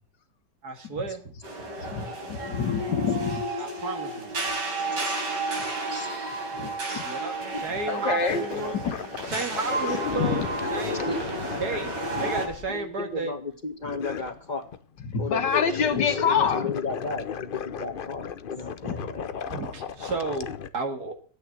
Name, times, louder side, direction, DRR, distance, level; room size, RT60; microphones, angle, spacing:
voice 1, 0.6-1.3 3.6-4.3 7.0-8.8 9.3-10.4 10.7-11.2 11.6-11.9 12.2-13.3 19.5-21.2, right 3 dB, 65° right, 2.4 m, -32 dB
sound 1, 1.4-12.5, right 2 dB, 85° right, 4.6 m, -32 dB
voice 2, 1.8-3.4 6.6-7.0 7.5-8.4 8.7-8.9 10.2-10.4 15.0-16.7 18.9-19.0, left 6 dB, 85° left, 2.1 m, -27 dB
sound 2, 1.9-2.0 2.4-3.5 4.7-5.1 6.6-6.7 7.3-7.7 8.1-13.2 13.8-15.0 15.3-20.7, left 7 dB, 60° left, 0.5 m, -36 dB
voice 3, 11.0-11.6 12.7-14.7 15.2-19.3, left 3 dB, 25° left, 1.8 m, -34 dB
12.5 x 9.0 x 7.5 m
omnidirectional pair, 1.9 m